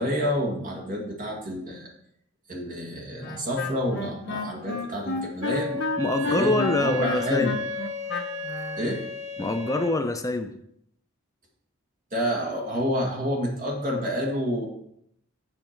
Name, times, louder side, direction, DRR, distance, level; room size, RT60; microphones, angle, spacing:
voice 1, 0.0-1.9 2.5-5.7 6.3-7.6 8.8-9.0 12.1-14.7, equal, 35° right, 0 dB, 1.9 m, -28 dB
Wind instrument woodwind instrument, 3.2-8.8, left 3 dB, 45° left, 1.0 m, -32 dB
Wind instrument woodwind instrument 2, 5.4-10.1, left 2 dB, 65° right, 0.9 m, -33 dB
voice 2, 5.7-7.5 9.4-10.6, left 2 dB, 15° left, 7 dB, 0.4 m, -25 dB
7.7 x 6.9 x 4.4 m, 0.74 s
head